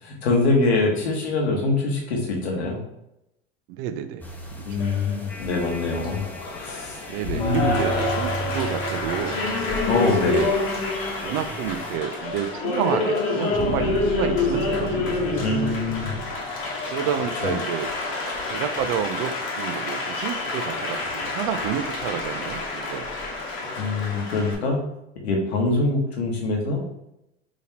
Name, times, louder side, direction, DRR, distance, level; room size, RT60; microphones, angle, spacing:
voice 1, 0.0-2.8 4.6-8.0 9.8-10.4 15.4-16.1 16.6-16.8 17.4-17.5 23.8-24.8 25.2-26.8, left 3 dB, 85° left, 0 dB, 1.0 m, -24 dB
voice 2, 3.7-4.2 4.7-4.9 7.1-9.4 10.2-10.6 11.2-15.2 16.9-18.2 18.5-23.1, right 9 dB, 55° right, 10 dB, 0.5 m, -29 dB
sound 1, 4.2-12.0, right 1 dB, 5° left, 0.5 m, -33 dB
Applause, 4.8-24.6, left 3 dB, 40° left, 1.0 m, -28 dB
sound 2, 13.5-17.0, right 2 dB, 25° right, 1.2 m, -34 dB
3.7 x 2.9 x 2.8 m, 0.84 s
hypercardioid pair, 95°, 32 cm